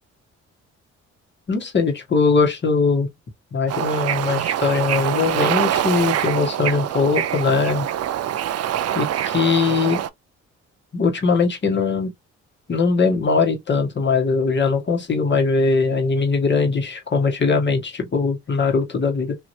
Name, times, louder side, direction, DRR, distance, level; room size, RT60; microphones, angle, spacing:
voice 1, 1.5-3.1 3.5-7.9 8.9-10.0 10.9-12.1 12.7-19.4, left 4 dB, 35° left, 1.4 m, -20 dB
Bird / Ocean, 3.7-10.1, right 11 dB, 55° right, 0.5 m, -24 dB
3.1 x 2.8 x 2.6 m
cardioid pair, 90°, 30 cm